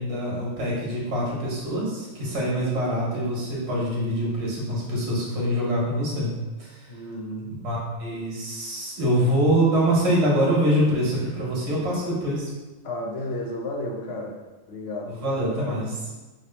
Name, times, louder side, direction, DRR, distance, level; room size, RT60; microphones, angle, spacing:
voice 1, 0.0-6.3 6.6-6.9 7.6-12.5 15.1-16.0, equal, 60° right, -5 dB, 1.3 m, -24 dB
voice 2, 6.9-7.5 12.8-14.3 14.7-15.8, left 1 dB, 60° left, 0 dB, 0.7 m, -33 dB
3.0 x 2.4 x 4.1 m, 1.2 s
omnidirectional pair, 1.4 m